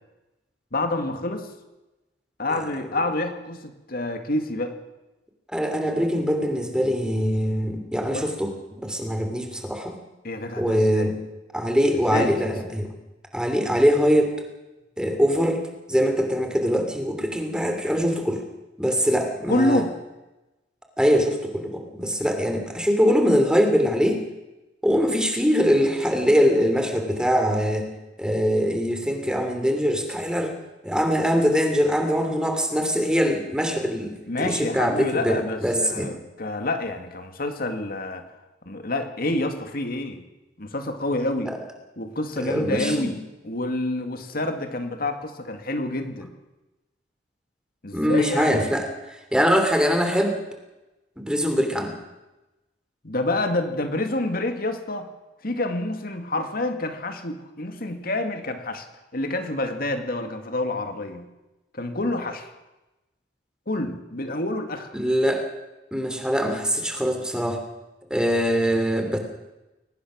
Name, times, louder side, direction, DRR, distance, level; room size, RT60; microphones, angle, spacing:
voice 1, 0.7-1.5 2.4-4.7 8.1-8.3 10.2-11.1 12.1-12.4 19.5-20.0 34.3-38.3 38.7-40.3 40.6-41.6 42.0-43.2 43.4-46.3 47.8-48.7 53.0-55.1 55.4-58.9 59.1-61.3 61.7-62.5 63.7-64.9, left 2 dB, 55° left, 7 dB, 2.3 m, -28 dB
voice 2, 5.5-10.0 10.6-11.2 11.5-12.9 13.3-14.3 15.0-15.6 15.9-18.4 18.8-19.8 21.0-24.2 24.8-27.9 28.2-30.5 30.8-36.1 41.5-41.6 42.4-43.1 47.9-50.4 51.2-51.9 64.9-65.4 65.9-67.6 68.1-69.2, equal, 5° right, 5 dB, 2.9 m, -22 dB
22.0 x 19.0 x 6.4 m, 1.0 s
head